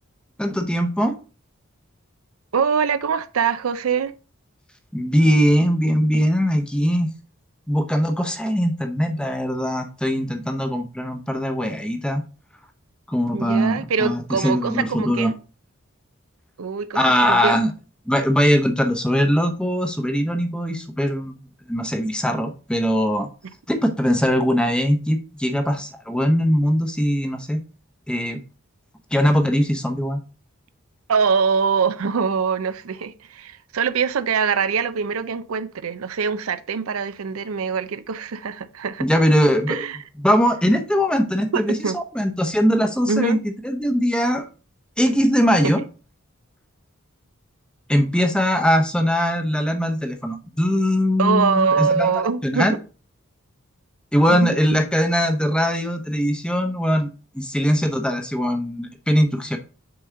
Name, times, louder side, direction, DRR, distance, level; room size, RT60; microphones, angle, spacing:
voice 1, 0.4-1.2 4.9-7.1 7.7-12.2 13.1-15.3 16.9-17.7 18.1-21.3 21.7-23.3 23.7-27.6 28.1-28.4 29.1-30.2 39.0-39.9 40.2-44.4 45.0-45.8 47.9-52.1 52.4-52.7 54.1-57.1 57.3-59.6, equal, 5° left, 0.8 m, -21 dB
voice 2, 2.5-4.1 13.3-15.3 16.6-17.6 31.1-39.1 39.7-40.0 41.5-42.0 43.1-43.4 45.6-45.7 51.2-52.7 54.3-54.6, right 6 dB, 85° right, 0.5 m, -23 dB
6.7 x 4.3 x 3.7 m
head